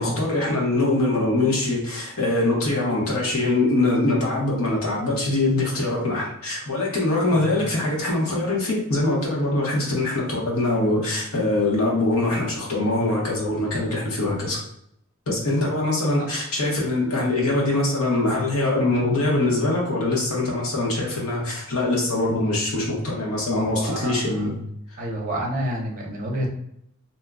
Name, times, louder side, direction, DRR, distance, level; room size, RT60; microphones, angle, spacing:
voice 1, 0.0-14.6 15.3-24.6 24.9-25.0, left 2 dB, 90° left, -3 dB, 1.1 m, -23 dB
voice 2, 7.3-7.7 16.2-16.3 23.6-24.2 25.0-26.5, right 1 dB, 40° right, 0 dB, 0.7 m, -29 dB
2.7 x 2.2 x 3.6 m, 0.74 s
head